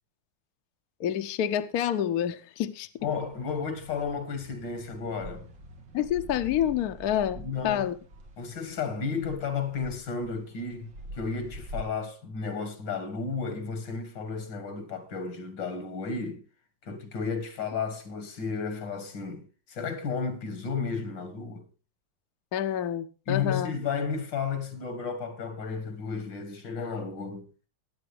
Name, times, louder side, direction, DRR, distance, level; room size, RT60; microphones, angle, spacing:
voice 1, 1.0-2.9 5.9-8.0 22.5-23.8, left 10 dB, 65° left, 1.1 m, -28 dB
voice 2, 3.0-5.5 7.3-7.9 8.4-16.4 16.8-21.7 23.3-27.5, left 5 dB, 80° left, 2.5 m, -33 dB
sound 1, 3.0-11.8, right 1 dB, 90° right, 2.9 m, -46 dB
20.0 x 8.8 x 3.3 m
omnidirectional pair, 2.0 m